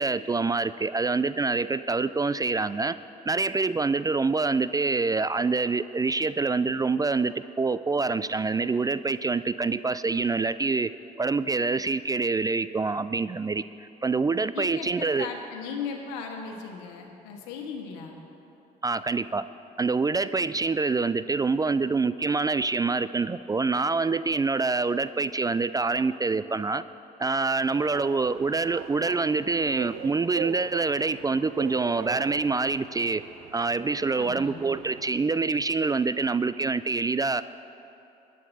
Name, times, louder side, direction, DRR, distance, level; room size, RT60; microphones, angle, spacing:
voice 1, 0.0-3.0 3.3-10.9 11.2-13.6 14.0-15.3 18.8-19.4 19.8-26.8 27.2-33.2 33.5-37.4, right 4 dB, 20° right, 14 dB, 0.3 m, -26 dB
voice 2, 14.5-18.2 34.2-34.6, left 6 dB, 80° left, 2 dB, 1.4 m, -37 dB
sound 1, 27.7-35.1, right 9 dB, 75° right, 0.6 m, -41 dB
22.0 x 10.5 x 2.8 m, 2.8 s
hypercardioid pair, 50°, 21 cm